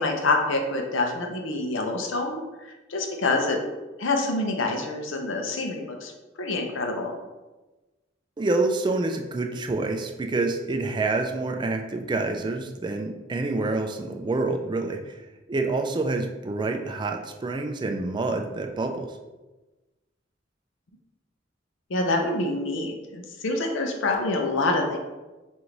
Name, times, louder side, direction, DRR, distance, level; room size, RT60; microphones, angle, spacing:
voice 1, 0.0-3.6 4.0-6.1 6.4-7.1 21.9-25.0, left 2 dB, 90° left, 3 dB, 0.6 m, -26 dB
voice 2, 8.4-15.2 15.5-19.1, right 3 dB, 25° right, 4 dB, 0.3 m, -27 dB
5.0 x 2.6 x 2.9 m, 1.2 s
head